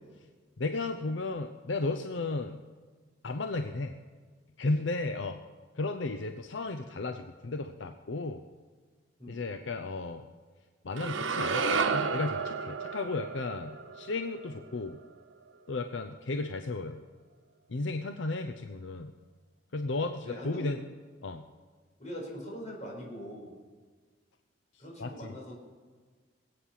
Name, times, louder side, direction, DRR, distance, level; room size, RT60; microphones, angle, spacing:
voice 1, 0.6-2.6 3.2-3.9 4.6-5.4 5.8-8.4 9.3-10.3 10.8-15.0 15.7-17.0 17.7-19.1 19.7-20.8 21.2-21.5 25.0-25.3, left 3 dB, 75° left, 6 dB, 0.7 m, -34 dB
sound 1, 11.0-15.2, right 5 dB, 85° right, 1.1 m, -32 dB
voice 2, 20.2-20.7 22.0-23.5 24.8-25.6, equal, 40° left, -2 dB, 4.7 m, -41 dB
21.0 x 8.7 x 5.8 m, 1.5 s
head